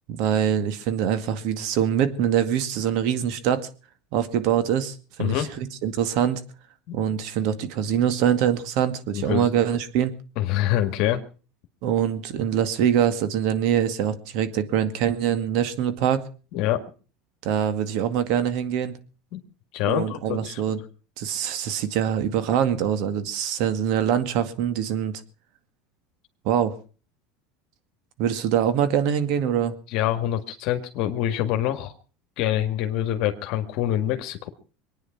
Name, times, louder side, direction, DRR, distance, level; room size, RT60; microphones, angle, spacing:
voice 1, 0.1-3.7 4.1-6.4 6.9-10.1 11.8-16.2 17.4-19.0 19.8-20.8 21.2-25.2 26.4-26.8 28.2-29.7, right 9 dB, 65° right, 11 dB, 2.1 m, -24 dB
voice 2, 5.2-5.5 6.9-7.0 9.1-9.5 10.4-11.2 16.5-16.8 19.3-19.4 19.7-20.6 29.9-31.9 32.4-34.5, left 12 dB, 60° left, 7 dB, 1.8 m, -25 dB
23.0 x 9.7 x 5.9 m, 0.39 s
supercardioid pair, 130°, 0 cm